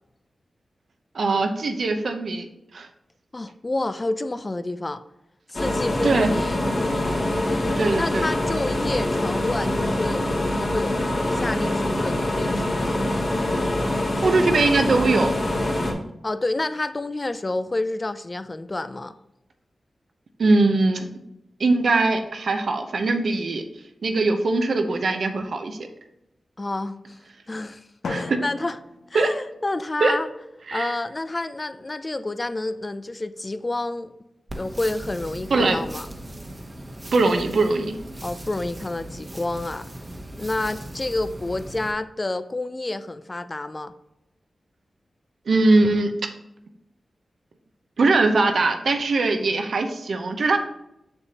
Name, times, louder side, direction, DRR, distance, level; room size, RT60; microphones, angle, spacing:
voice 1, 1.1-2.5 2.7-2.9 6.0-6.3 7.8-8.3 14.2-15.3 20.4-21.1 21.6-23.6 24.0-25.8 28.1-28.4 29.1-29.3 30.0-30.1 30.7-30.9 35.5-35.8 37.1-38.0 45.5-46.1 48.0-50.6, right 3 dB, 75° right, 6 dB, 0.8 m, -21 dB
voice 2, 3.3-5.0 5.5-6.6 7.3-11.0 11.3-13.0 16.2-19.2 26.6-27.2 27.5-27.8 28.1-28.8 29.1-30.3 30.7-34.1 34.6-36.1 38.2-39.9 40.4-43.9, left 2 dB, 30° left, 12 dB, 0.4 m, -29 dB
sound 1, 5.5-15.9, left 1 dB, 50° left, 2.1 m, -24 dB
Drum, 28.0-30.0, left 3 dB, 85° left, 0.8 m, -36 dB
sound 2, 34.5-41.9, right 1 dB, 25° right, 1.0 m, -38 dB
6.9 x 6.8 x 2.9 m, 0.86 s
wide cardioid pair, 80°, 0 cm